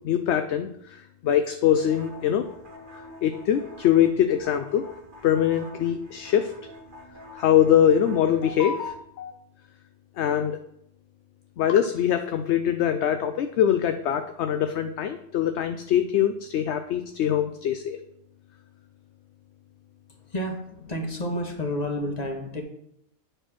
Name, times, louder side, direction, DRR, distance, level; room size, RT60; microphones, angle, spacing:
voice 1, 0.0-2.5 3.2-4.9 5.2-6.5 7.3-9.3 10.2-10.6 11.6-18.0, left 9 dB, 65° left, 8 dB, 0.8 m, -23 dB
sound 1, 1.7-9.0, left 1 dB, 40° right, 1.2 m, -45 dB
voice 2, 20.3-22.6, equal, 30° left, 2 dB, 1.5 m, -30 dB
9.1 x 4.5 x 5.9 m, 0.76 s
omnidirectional pair, 1.4 m